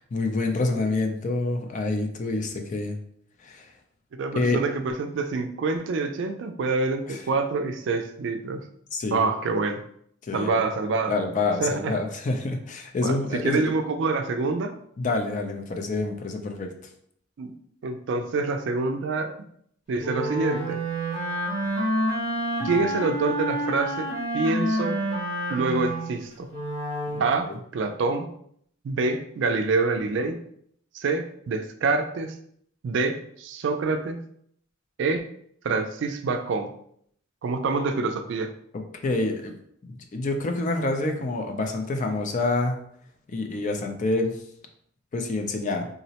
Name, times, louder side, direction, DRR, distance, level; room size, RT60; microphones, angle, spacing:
voice 1, 0.1-3.0 3.4-3.7 4.3-4.6 7.1-7.2 8.9-9.3 10.2-10.6 11.1-13.6 15.0-16.7 22.6-22.9 27.1-27.6 38.7-39.5 39.8-42.8 43.3-44.3 45.1-45.9, left 2 dB, 40° left, 4 dB, 0.4 m, -27 dB
voice 2, 4.1-8.6 9.1-9.8 10.3-11.1 11.6-11.9 13.0-14.7 17.4-17.5 17.8-19.3 19.9-20.8 22.6-24.1 24.3-25.0 25.5-26.5 27.2-27.5 27.7-28.3 28.8-30.4 30.9-32.3 32.8-34.2 35.0-35.2 35.6-36.7 37.4-38.5, right 3 dB, 65° right, 7 dB, 0.3 m, -26 dB
Wind instrument woodwind instrument, 20.0-27.4, right 1 dB, 60° left, 1.4 m, -28 dB
3.7 x 2.0 x 2.8 m, 0.67 s
head